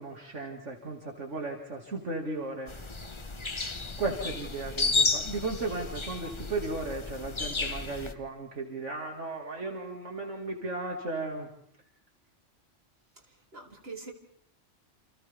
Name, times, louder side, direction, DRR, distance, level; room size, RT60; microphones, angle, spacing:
voice 1, 0.0-2.7 4.0-11.5, right 3 dB, 70° right, 1 dB, 2.5 m, -35 dB
sound 1, 2.7-8.1, left 3 dB, 25° left, 1.0 m, -32 dB
voice 2, 13.3-14.1, right 3 dB, 50° right, 1 dB, 3.4 m, -44 dB
29.0 x 28.5 x 3.5 m, 0.69 s
omnidirectional pair, 1.3 m